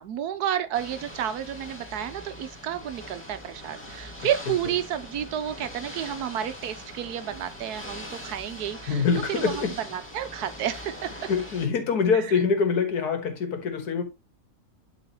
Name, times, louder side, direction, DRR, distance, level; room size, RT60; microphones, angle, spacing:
voice 1, 0.0-11.3 12.1-12.2, right 10 dB, 80° right, 1.3 m, -31 dB
Ocean / Boat Water vehicle, 0.7-11.7, equal, 10° left, 1.9 m, -42 dB
voice 2, 8.9-9.8 11.3-14.0, left 5 dB, 80° left, 1.9 m, -24 dB
11.5 x 3.9 x 2.9 m
omnidirectional pair, 1.7 m